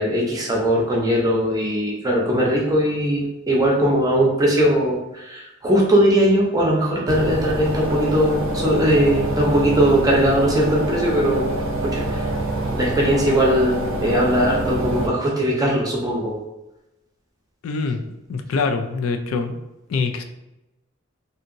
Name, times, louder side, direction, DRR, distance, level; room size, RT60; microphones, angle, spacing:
voice 1, 0.0-11.4 11.8-12.2 12.8-16.4, equal, 20° right, -2 dB, 0.6 m, -19 dB
sound 1, 7.1-15.1, right 1 dB, 65° right, 0.5 m, -26 dB
voice 2, 17.6-18.0 18.3-19.6 19.9-20.2, left 4 dB, 75° left, 5 dB, 0.3 m, -24 dB
2.7 x 2.7 x 2.5 m, 0.93 s
head